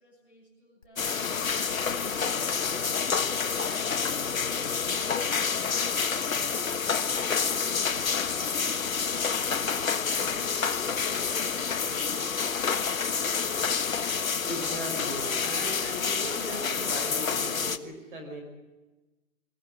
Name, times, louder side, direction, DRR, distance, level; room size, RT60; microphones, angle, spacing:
voice 1, 0.0-5.3, left 2 dB, 5° right, -6 dB, 7.5 m, -55 dB
sound 1, 0.8-4.0, left 5 dB, 25° left, 0.7 m, -48 dB
sound 2, 1.0-17.8, left 6 dB, 90° left, 1.5 m, -28 dB
voice 2, 14.4-18.4, right 1 dB, 40° right, 3 dB, 5.6 m, -38 dB
22.5 x 15.5 x 10.0 m, 1.1 s
hypercardioid pair, 170°, 40 cm